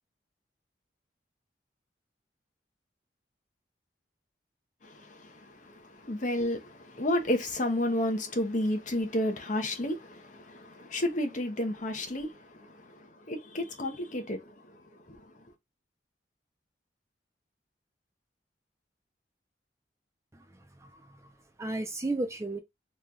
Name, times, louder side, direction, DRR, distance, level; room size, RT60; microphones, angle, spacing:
voice 1, 4.8-14.8 15.1-15.3, left 1 dB, 45° left, 0.8 m, -32 dB
voice 2, 20.3-21.3 21.6-22.6, right 2 dB, 15° right, 0.5 m, -35 dB
3.1 x 2.3 x 3.8 m
head